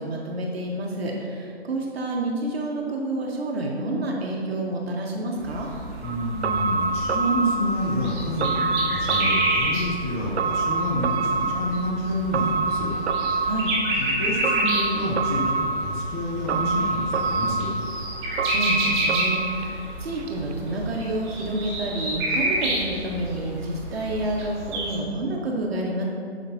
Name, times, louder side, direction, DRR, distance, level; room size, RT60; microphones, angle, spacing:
voice 1, 0.0-5.7 13.4-13.7 18.4-26.0, right 1 dB, 65° right, -1 dB, 1.4 m, -29 dB
sound 1, 5.4-24.9, right 1 dB, 25° right, 1.7 m, -30 dB
voice 2, 6.0-12.9 14.0-17.7, equal, 15° left, -1 dB, 0.5 m, -28 dB
sound 2, 6.0-20.2 20.5-20.6, right 3 dB, 85° right, 0.5 m, -27 dB
10.5 x 5.8 x 2.8 m, 2.4 s
hypercardioid pair, 150°, 33 cm